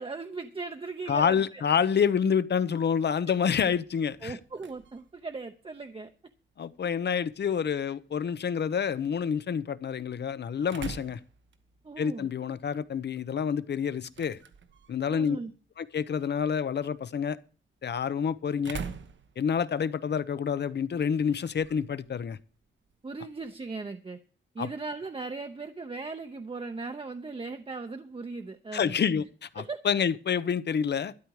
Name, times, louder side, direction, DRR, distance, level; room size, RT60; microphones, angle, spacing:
voice 1, 0.0-1.6 4.2-6.1 7.7-7.8 11.8-12.3 15.1-15.5 23.0-24.2 24.5-29.0 29.6-29.8, right 3 dB, 30° right, 0.8 m, -38 dB
voice 2, 1.1-4.4 6.6-11.2 12.0-14.4 14.9-15.4 15.8-17.4 17.8-18.8 19.4-22.4 24.6-24.7 28.7-31.1, left 7 dB, 60° left, 0.8 m, -28 dB
sound 1, 3.8-23.7, right 6 dB, 75° right, 1.1 m, -49 dB
12.5 x 10.5 x 4.8 m
wide cardioid pair, 130°, 19 cm